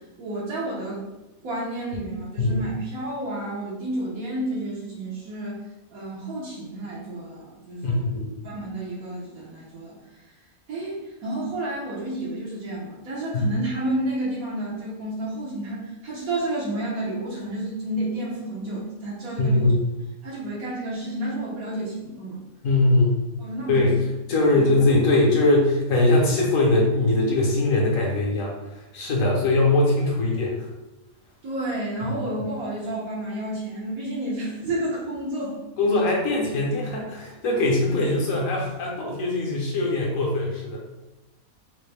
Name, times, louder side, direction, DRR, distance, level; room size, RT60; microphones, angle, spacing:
voice 1, 0.2-1.0 1.4-5.6 5.9-8.1 8.4-10.0 10.7-19.7 20.2-22.4 23.4-23.8 24.5-24.7 31.4-35.5, right 1 dB, 80° right, -7 dB, 1.3 m, -30 dB
voice 2, 7.8-8.3 13.3-13.4 19.4-19.8 22.6-23.1 23.7-24.0 24.3-30.7 32.0-32.1 35.8-40.8, left 2 dB, 70° left, -1 dB, 1.2 m, -21 dB
3.9 x 2.0 x 3.3 m, 1.0 s
omnidirectional pair, 1.5 m